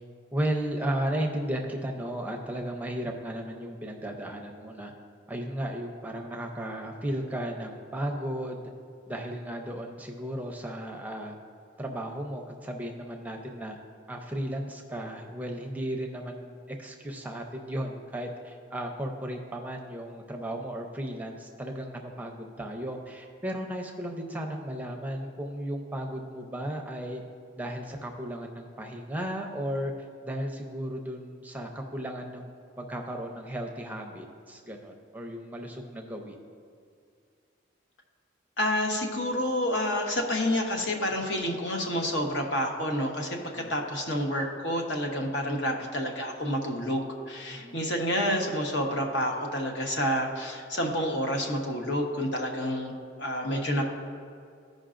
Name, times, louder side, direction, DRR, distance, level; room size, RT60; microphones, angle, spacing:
voice 1, 0.3-4.9 5.3-8.6 9.1-11.4 11.8-13.8 14.1-27.2 27.6-29.9 30.2-32.5 32.8-36.4 43.5-43.7 47.5-47.8, right 1 dB, 10° right, 1 dB, 0.6 m, -35 dB
voice 2, 38.6-52.9 53.2-53.9, equal, 65° left, 1 dB, 1.0 m, -29 dB
15.0 x 5.3 x 2.5 m, 2.3 s
head